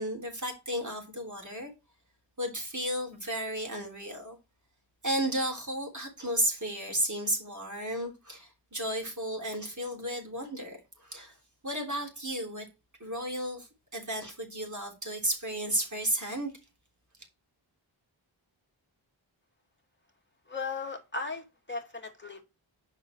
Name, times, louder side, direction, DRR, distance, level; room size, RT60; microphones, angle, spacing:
voice 1, 0.0-1.7 2.4-4.4 5.0-10.8 11.1-11.3 11.6-12.7 13.0-13.7 13.9-16.5, right 1 dB, 40° right, 3.5 m, -33 dB
voice 2, 20.5-22.4, left 4 dB, 25° left, 2.4 m, -37 dB
7.4 x 5.1 x 4.5 m
wide cardioid pair, 45°, 47 cm